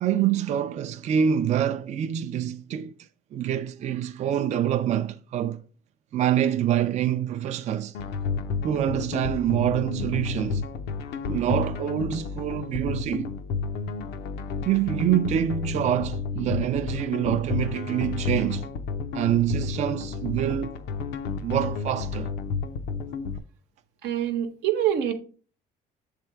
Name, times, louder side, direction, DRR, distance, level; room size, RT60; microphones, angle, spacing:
voice 1, 0.0-2.9 3.3-5.6 6.1-7.9 8.6-10.6 11.3-13.3 14.6-18.7 19.1-20.7 21.4-22.3, right 10 dB, 45° right, 0.4 m, -26 dB
sound 1, 7.9-23.4, left 5 dB, 80° left, 0.6 m, -31 dB
voice 2, 24.0-25.1, right 10 dB, 85° right, 0.9 m, -25 dB
7.0 x 3.4 x 4.5 m
cardioid pair, 110°, 17 cm